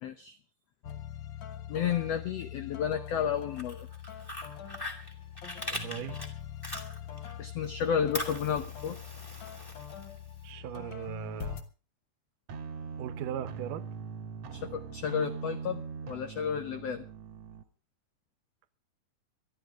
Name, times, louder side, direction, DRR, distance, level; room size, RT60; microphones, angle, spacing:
voice 1, 0.0-0.4 1.7-3.9 7.4-9.0 14.5-17.0, left 8 dB, 75° left, 1.5 m, -32 dB
sound 1, 0.8-11.6, left 10 dB, 60° left, 1.3 m, -43 dB
Fire, 3.4-7.3 7.6-10.4, left 1 dB, 5° left, 2.1 m, -41 dB
voice 2, 5.7-6.2 10.4-11.6 13.0-13.8, right 11 dB, 75° right, 2.5 m, -38 dB
sound 2, 12.5-17.6, right 5 dB, 55° right, 2.1 m, -41 dB
22.5 x 12.5 x 3.6 m
omnidirectional pair, 4.0 m